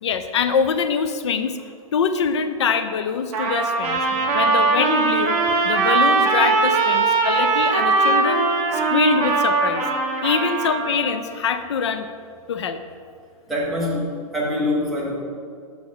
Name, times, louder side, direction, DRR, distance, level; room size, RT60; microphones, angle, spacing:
voice 1, 0.0-1.6 1.9-4.0 4.3-8.5 8.7-9.8 10.2-12.1 12.5-12.8, left 6 dB, 50° left, 9 dB, 0.4 m, -24 dB
Trumpet, 3.3-11.1, right 3 dB, 25° right, 0.9 m, -20 dB
voice 2, 13.5-15.2, left 1 dB, ahead, -7 dB, 0.7 m, -25 dB
6.1 x 5.8 x 3.8 m, 2.2 s
hypercardioid pair, 175°, 19 cm